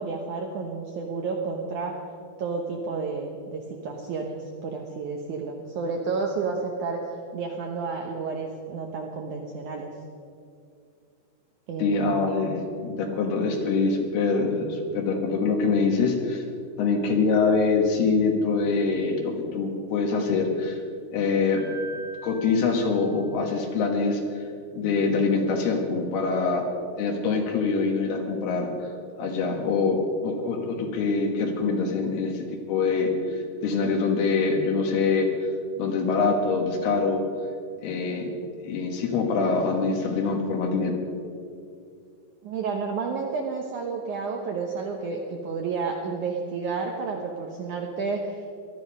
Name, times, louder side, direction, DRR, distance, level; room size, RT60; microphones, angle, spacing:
voice 1, 0.0-1.9 2.4-7.0 7.3-9.9 11.7-12.3 42.4-48.6, right 4 dB, 75° right, 1 dB, 1.8 m, -31 dB
voice 2, 11.8-16.4 16.8-20.8 21.1-21.7 22.2-24.4 24.8-26.6 27.0-28.7 29.2-35.3 35.8-37.2 37.8-38.3 38.6-41.0, left 4 dB, 70° left, 2 dB, 3.4 m, -24 dB
Piano, 21.6-23.7, right 2 dB, 40° left, 2.3 m, -43 dB
18.5 x 12.5 x 5.4 m, 2.4 s
omnidirectional pair, 4.9 m